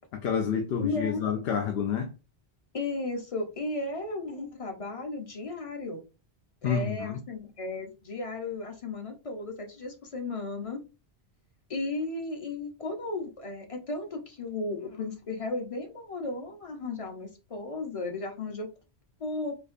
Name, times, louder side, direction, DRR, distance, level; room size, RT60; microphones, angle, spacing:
voice 1, 0.2-2.1 6.6-7.2, left 7 dB, 75° left, 0.8 m, -29 dB
voice 2, 0.8-1.2 2.7-6.0 6.6-10.8 11.7-18.7 19.2-19.6, left 3 dB, 40° left, 0.7 m, -35 dB
4.4 x 2.4 x 2.5 m
omnidirectional pair, 1.0 m